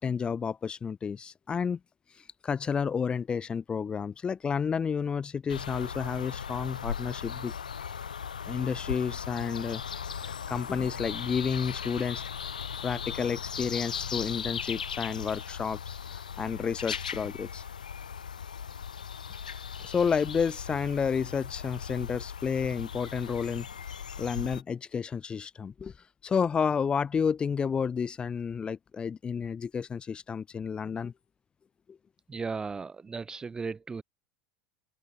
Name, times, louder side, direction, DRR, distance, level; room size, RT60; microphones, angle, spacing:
voice 1, 0.0-1.8 2.4-7.5 8.5-9.8 10.5-12.2 12.8-17.6 19.8-23.7 24.2-25.9 26.2-31.1 31.9-32.0, left 6 dB, 20° left, 0.6 m, -31 dB
sound 1, 5.5-24.6, left 7 dB, 80° left, 3.1 m, -38 dB
voice 2, 32.3-34.0, right 4 dB, 20° right, 2.0 m, -36 dB
figure-of-eight pair, 80°, 4 cm